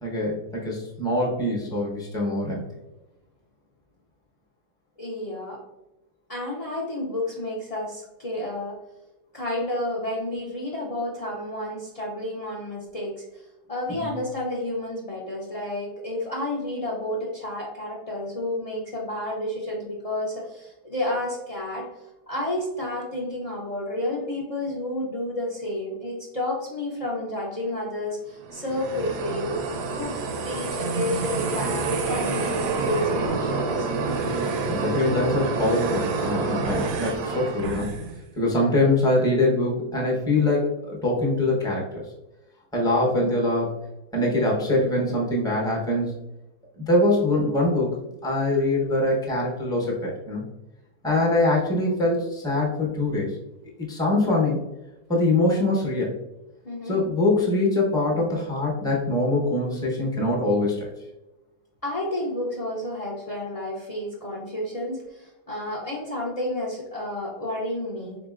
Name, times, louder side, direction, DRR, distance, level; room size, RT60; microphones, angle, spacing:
voice 1, 0.0-2.6 14.0-14.1 34.7-37.9 38.4-42.0 42.7-43.7 44.1-46.1 46.9-50.4 51.0-53.3 53.9-54.6 55.1-56.1 56.9-60.9, left 2 dB, 5° left, -3 dB, 0.5 m, -23 dB
voice 2, 5.0-5.6 6.3-8.8 9.3-13.4 13.7-21.9 22.3-33.9 56.6-57.0 61.8-68.2, left 1 dB, 65° left, -3 dB, 0.3 m, -31 dB
sound 1, 28.4-38.2, right 4 dB, 85° right, 1.2 m, -27 dB
3.9 x 3.8 x 2.4 m, 0.96 s
omnidirectional pair, 1.7 m